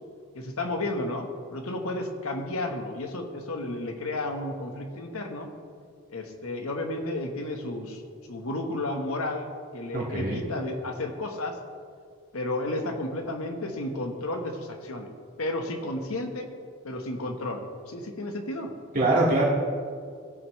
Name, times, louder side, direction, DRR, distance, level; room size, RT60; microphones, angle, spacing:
voice 1, 0.3-5.5 6.1-8.0 8.3-9.5 9.7-11.6 12.3-15.1 15.4-16.5 16.8-18.7, left 1 dB, 75° left, 4 dB, 1.2 m, -32 dB
voice 2, 9.9-10.4 18.9-19.4, right 2 dB, 40° right, -5 dB, 2.0 m, -23 dB
16.5 x 9.1 x 3.2 m, 2.1 s
head